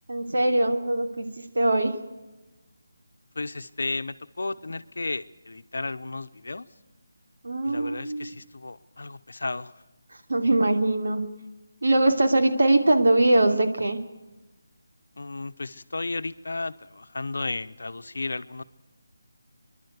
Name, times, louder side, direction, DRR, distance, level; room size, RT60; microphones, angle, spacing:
voice 1, 0.1-1.9 7.4-8.3 10.3-11.2 11.8-14.0, right 2 dB, 75° right, 5 dB, 2.8 m, -22 dB
voice 2, 3.3-6.6 7.6-9.7 15.2-18.6, left 3 dB, 70° left, 10 dB, 0.9 m, -33 dB
27.5 x 11.5 x 8.2 m, 1.1 s
figure-of-eight pair, 180°, 0 cm